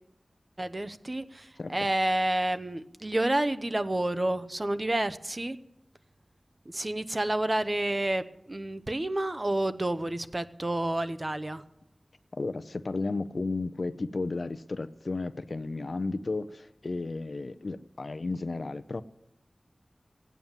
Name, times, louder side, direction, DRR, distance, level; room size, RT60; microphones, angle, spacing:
voice 1, 0.6-5.6 6.7-11.6, right 1 dB, 35° right, 11 dB, 0.8 m, -29 dB
voice 2, 12.3-19.0, left 3 dB, 65° left, 13 dB, 0.6 m, -33 dB
16.0 x 9.3 x 7.4 m, 0.84 s
wide cardioid pair, 50°, 0 cm